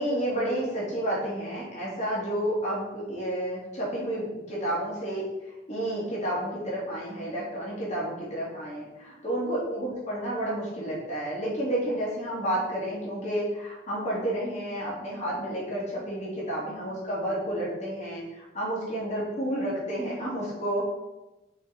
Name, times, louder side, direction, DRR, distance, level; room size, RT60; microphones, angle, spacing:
voice 1, 0.0-5.3 5.7-20.9, right 1 dB, 35° left, -6 dB, 2.6 m, -30 dB
6.8 x 5.1 x 4.3 m, 1.0 s
head